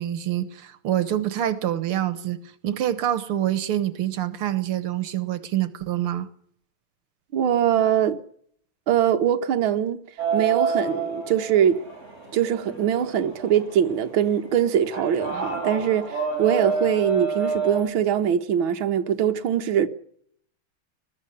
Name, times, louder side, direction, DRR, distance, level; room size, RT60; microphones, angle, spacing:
voice 1, 0.0-2.4 2.6-6.3, right 12 dB, 85° right, 2.1 m, -26 dB
voice 2, 7.3-8.2 8.9-10.0 10.3-11.8 12.3-19.9, right 9 dB, 70° right, 2.0 m, -22 dB
sound 1, 10.2-17.8, right 5 dB, 30° right, 7.4 m, -29 dB
21.0 x 13.5 x 10.0 m
omnidirectional pair, 2.4 m